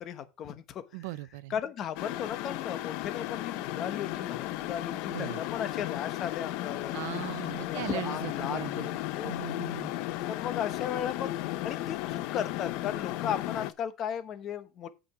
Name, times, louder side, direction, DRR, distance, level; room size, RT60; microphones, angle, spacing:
voice 1, 0.0-1.1 1.5-7.0 7.6-9.5 10.3-11.4 11.6-14.9, left 9 dB, 25° left, 1.0 m, -36 dB
voice 2, 0.9-1.5 5.1-5.4 6.9-8.9 9.2-9.9, right 19 dB, 60° right, 0.4 m, -39 dB
sound 1, 2.0-13.7, left 15 dB, 45° left, 0.6 m, -35 dB
8.8 x 5.1 x 6.0 m
supercardioid pair, 175°, 0 cm